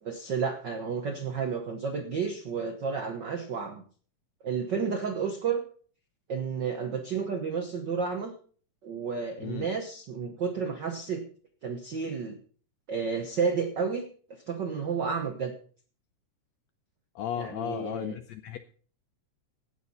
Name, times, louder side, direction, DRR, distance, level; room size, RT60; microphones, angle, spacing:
voice 1, 0.0-3.8 4.4-5.6 6.3-8.3 8.8-11.2 11.6-12.4 12.9-14.1 14.5-15.5 17.3-18.2, right 5 dB, 70° right, 5 dB, 1.0 m, -31 dB
voice 2, 17.1-18.6, left 10 dB, 80° left, 10 dB, 1.6 m, -35 dB
17.5 x 6.7 x 5.5 m, 0.44 s
omnidirectional pair, 3.7 m